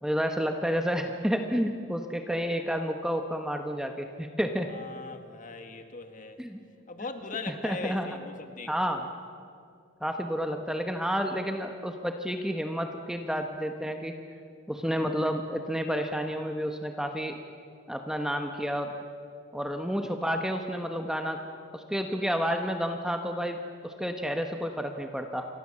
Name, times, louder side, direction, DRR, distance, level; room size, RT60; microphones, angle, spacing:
voice 1, 0.0-4.7 6.4-6.6 7.6-8.1 8.7-9.1 10.0-14.1 14.7-17.4 17.9-18.9 19.5-21.4 21.7-25.5, equal, 5° right, 5 dB, 1.1 m, -30 dB
voice 2, 4.7-6.4 6.9-8.7, left 3 dB, 40° left, 6 dB, 1.9 m, -40 dB
28.0 x 24.0 x 7.5 m, 2.4 s
head